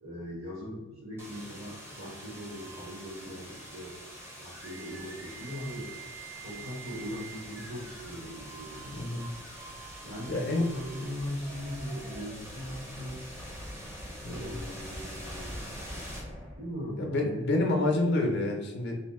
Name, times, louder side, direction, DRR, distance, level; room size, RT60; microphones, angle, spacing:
voice 1, 0.0-5.9 6.4-8.9 10.0-13.2 14.2-15.6 16.5-17.4, equal, 75° right, -6 dB, 1.4 m, -40 dB
sound 1, 1.2-17.0, right 1 dB, 10° right, 0.5 m, -44 dB
voice 2, 8.9-9.3 10.3-10.7 14.2-14.5 17.0-19.0, left 2 dB, 50° left, 1 dB, 0.5 m, -28 dB
2.6 x 2.4 x 3.5 m, 1.1 s
head